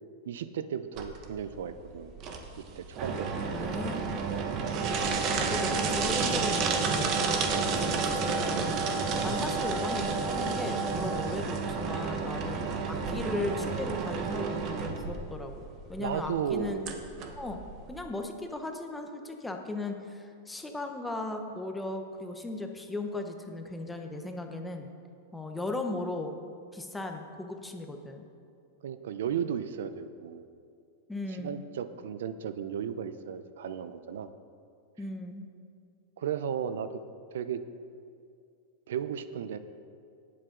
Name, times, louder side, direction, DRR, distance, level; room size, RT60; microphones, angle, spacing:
voice 1, 0.3-2.2 2.6-3.3 3.6-3.7 4.3-4.5 12.6-12.8 16.0-16.9 28.8-30.5 31.4-34.3 36.2-36.9 37.3-37.6 38.9-39.6, right 8 dB, 80° right, 12 dB, 0.6 m, -35 dB
sound 1, 1.0-18.0, right 4 dB, 35° right, 1.1 m, -31 dB
voice 2, 3.5-4.1 5.4-12.6 12.9-16.8 17.4-17.6 17.9-24.9 25.3-26.4 26.7-28.3 31.1-31.6 35.0-35.5, left 2 dB, 5° left, 4 dB, 0.8 m, -37 dB
18.0 x 7.9 x 3.8 m, 2.3 s
supercardioid pair, 155°, 0 cm